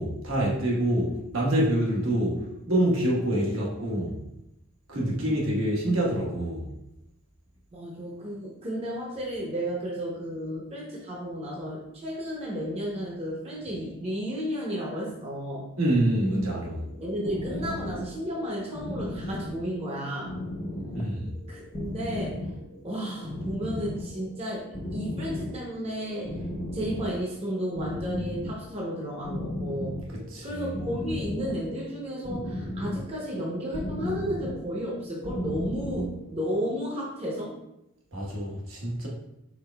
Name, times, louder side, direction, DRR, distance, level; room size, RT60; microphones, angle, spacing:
voice 1, 0.0-4.2 4.9-6.7 15.8-16.8 20.9-21.3 30.1-30.7 38.1-39.1, right 1 dB, 80° right, -3 dB, 1.2 m, -26 dB
voice 2, 7.7-15.7 17.0-20.3 21.5-22.4 22.8-26.4 26.7-30.0 30.4-37.6, equal, 30° right, -4 dB, 0.7 m, -33 dB
sound 1, 16.7-36.5, left 1 dB, 25° left, 0.5 m, -36 dB
4.7 x 4.2 x 2.2 m, 0.88 s
head